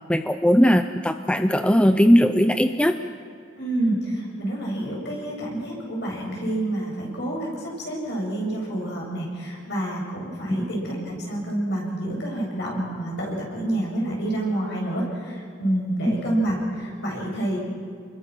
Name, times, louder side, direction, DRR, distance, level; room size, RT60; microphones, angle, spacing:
voice 1, 0.1-3.0 10.5-10.7 16.1-16.2, equal, 5° left, 8 dB, 0.5 m, -19 dB
voice 2, 3.6-17.6, right 1 dB, 60° left, -1 dB, 7.5 m, -28 dB
30.0 x 21.5 x 6.1 m, 2.4 s
head